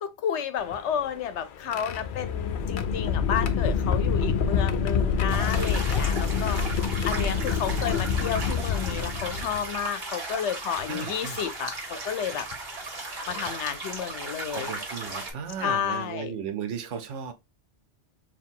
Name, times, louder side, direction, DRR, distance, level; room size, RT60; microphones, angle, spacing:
voice 1, 0.0-6.6 7.0-12.5 13.3-14.7 15.6-16.3, left 8 dB, 75° left, 0.9 m, -31 dB
sound 1, 0.6-9.9 10.8-10.9 12.3-12.5 13.3-13.5 15.1-15.2 15.6-15.9, left 6 dB, 55° left, 0.6 m, -27 dB
sound 2, 5.3-15.3, right 2 dB, 55° right, 1.6 m, -36 dB
voice 2, 7.3-8.0 10.9-11.4 14.5-17.3, right 7 dB, 85° right, 1.1 m, -36 dB
4.5 x 2.7 x 3.6 m
omnidirectional pair, 1.2 m